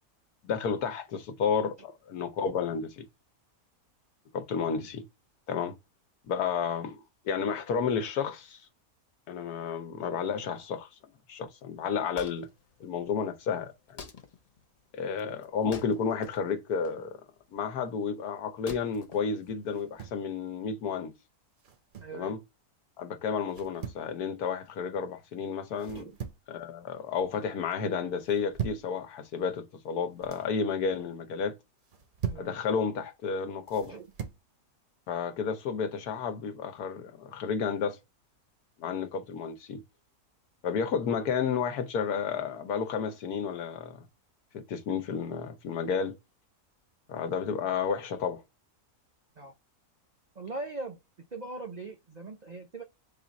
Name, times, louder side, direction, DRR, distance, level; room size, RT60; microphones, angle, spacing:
voice 1, 0.4-3.0 4.3-5.0 5.5-5.7 6.3-8.6 9.3-10.9 11.3-12.5 12.8-14.1 14.9-17.2 17.5-21.1 22.1-22.4 23.0-26.1 26.5-31.5 32.4-33.9 35.1-38.0 38.8-39.8 40.6-44.0 44.5-46.2 47.1-48.4, left 6 dB, 90° left, 1.4 m, -31 dB
Wood, 11.7-20.1, left 5 dB, 65° left, 0.3 m, -50 dB
sound 1, 19.7-20.3 21.6-22.2 23.5-24.1 25.8-26.5 26.9-27.4 28.2-28.9 30.0-30.5 31.8-32.5 33.7-34.4, right 8 dB, 45° right, 0.7 m, -39 dB
voice 2, 22.0-22.4 25.9-26.1 32.3-32.6 33.9-34.1 49.4-49.5 50.4-51.0 51.3-52.8, right 3 dB, 85° right, 0.3 m, -40 dB
3.8 x 2.5 x 3.9 m
omnidirectional pair, 1.6 m